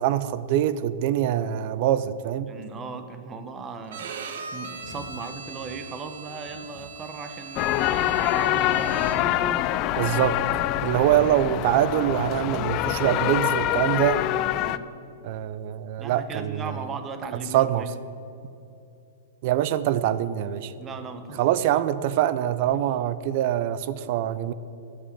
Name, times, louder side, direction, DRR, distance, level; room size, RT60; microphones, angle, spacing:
voice 1, 0.0-2.5 10.0-10.4 10.8-14.2 15.2-16.7 17.5-17.9 19.4-20.7 21.4-24.5, right 11 dB, 45° right, 15 dB, 0.5 m, -24 dB
voice 2, 2.5-9.8 14.5-14.8 16.0-17.9 20.8-21.6, right 4 dB, 15° right, 9 dB, 0.8 m, -38 dB
Bowed string instrument, 3.9-9.5, right 4 dB, 70° right, 1.2 m, -40 dB
sound 1, 4.8-5.1 5.6-5.8 6.4-6.9 7.6-7.9 8.4-8.6 8.9-9.3, left 3 dB, 55° left, 2.2 m, -45 dB
sound 2, 7.6-14.8, left 14 dB, 30° left, 0.3 m, -25 dB
10.5 x 7.3 x 8.5 m, 2.6 s
hypercardioid pair, 160°, 0 cm